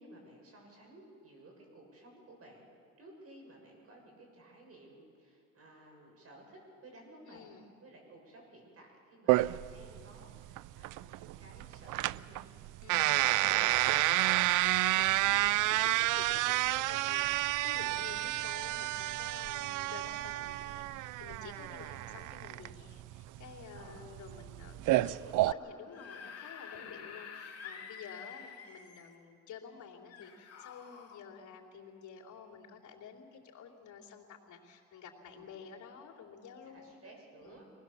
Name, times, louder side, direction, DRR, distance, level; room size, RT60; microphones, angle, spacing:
voice 1, 0.0-2.7 3.0-7.5 7.8-12.4 17.8-18.0 23.7-24.1 24.8-25.6 26.7-27.0 35.3-35.5 36.6-37.7, right 1 dB, 50° right, 1 dB, 6.9 m, -55 dB
voice 2, 7.3-7.7 12.8-13.2 14.7-25.1 25.5-37.0 37.4-37.6, left 6 dB, 75° left, -1 dB, 3.3 m, -51 dB
sound 1, 9.3-25.5, right 17 dB, 90° right, 0.4 m, -30 dB
Screaming / Screech, 25.8-29.1 30.1-31.2, left 7 dB, 55° left, 2.8 m, -48 dB
24.5 x 19.5 x 7.1 m, 2.4 s
cardioid pair, 90°, 30 cm